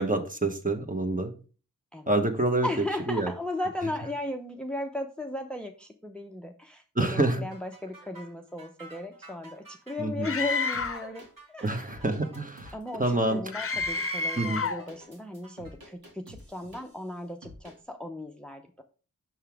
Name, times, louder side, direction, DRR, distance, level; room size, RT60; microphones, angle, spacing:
voice 1, 0.0-1.3 2.1-2.7 3.1-3.3 7.0-7.4 10.0-10.3 11.6-12.7 13.0-13.4 14.4-14.6, right 2 dB, 25° right, 6 dB, 1.1 m, -27 dB
voice 2, 2.6-12.0 12.7-18.8, left 1 dB, 5° left, 5 dB, 0.7 m, -36 dB
sound 1, 7.2-15.7, right 2 dB, 65° right, 2.5 m, -52 dB
Screaming, 10.2-11.1 13.5-14.9, left 4 dB, 40° left, 0.7 m, -30 dB
sound 2, 10.7-11.3 11.7-13.1 13.7-14.1 14.5-17.1 17.4-17.8, equal, 85° right, 2.2 m, -49 dB
6.0 x 5.5 x 3.4 m, 0.37 s
cardioid pair, 50°, 35 cm